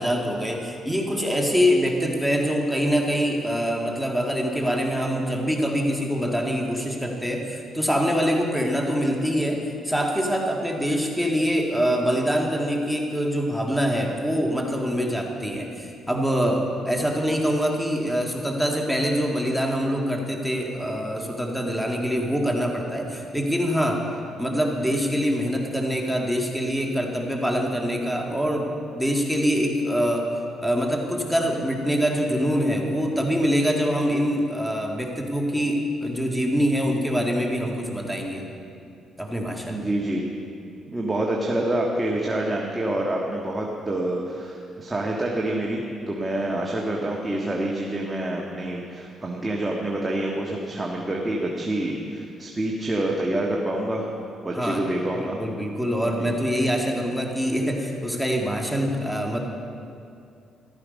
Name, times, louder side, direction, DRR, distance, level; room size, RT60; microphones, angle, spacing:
voice 1, 0.0-24.0 24.4-30.3 30.6-38.4 39.2-39.9 54.5-54.9 55.2-59.4, equal, ahead, 1 dB, 2.0 m, -24 dB
voice 2, 39.7-40.3 40.9-45.8 46.1-54.1 54.4-55.4 56.2-56.3, right 1 dB, 15° right, -2 dB, 1.6 m, -27 dB
14.5 x 13.0 x 5.3 m, 2.5 s
cardioid pair, 90°, 0 cm